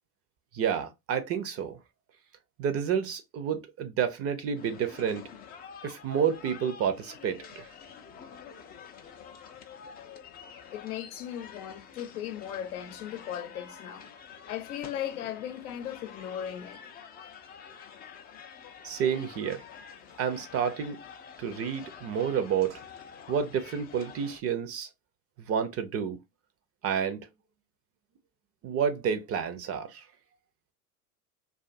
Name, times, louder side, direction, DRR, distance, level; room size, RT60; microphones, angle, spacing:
voice 1, 0.5-1.8 2.6-5.2 5.8-7.7 18.8-19.6 20.2-21.0 21.4-22.8 23.3-24.9 25.5-26.2 26.8-27.3 28.6-30.0, right 7 dB, 35° right, 0.5 m, -30 dB
sound 1, 4.6-24.4, left 7 dB, 25° left, 0.4 m, -48 dB
voice 2, 10.7-14.1 14.5-16.8, left 10 dB, 75° left, 0.7 m, -37 dB
2.4 x 2.4 x 2.5 m
hypercardioid pair, 85°, 45 cm